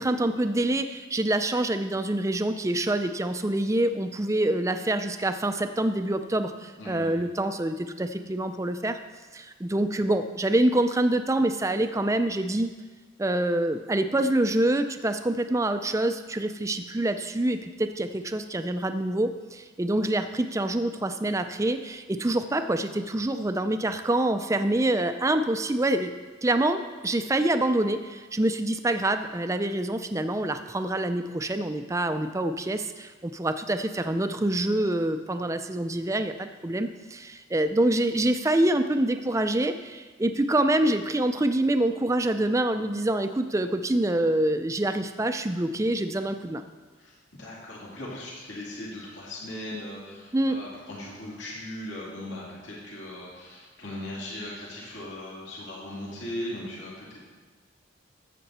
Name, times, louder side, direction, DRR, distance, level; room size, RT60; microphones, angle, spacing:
voice 1, 0.0-9.0 9.3-12.7 13.2-26.1 26.4-36.3 36.6-46.6 50.3-50.6, right 1 dB, 15° right, 8 dB, 0.4 m, -26 dB
voice 2, 6.8-7.2 47.0-57.2, left 1 dB, 65° left, -5 dB, 2.6 m, -38 dB
13.5 x 7.7 x 4.3 m, 1.3 s
head